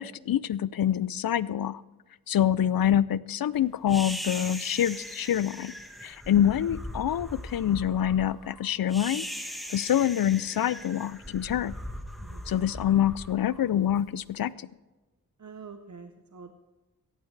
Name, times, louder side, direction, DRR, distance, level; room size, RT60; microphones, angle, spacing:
voice 1, 0.0-1.8 2.3-5.7 6.0-9.3 9.7-11.7 12.5-14.5, left 10 dB, 65° left, 19 dB, 0.5 m, -26 dB
sound 1, 3.9-14.2, equal, ahead, 1.3 m, -40 dB
voice 2, 15.4-16.5, right 5 dB, 50° right, 6 dB, 0.8 m, -46 dB
17.0 x 14.5 x 3.3 m, 1.2 s
wide cardioid pair, 105°, 38 cm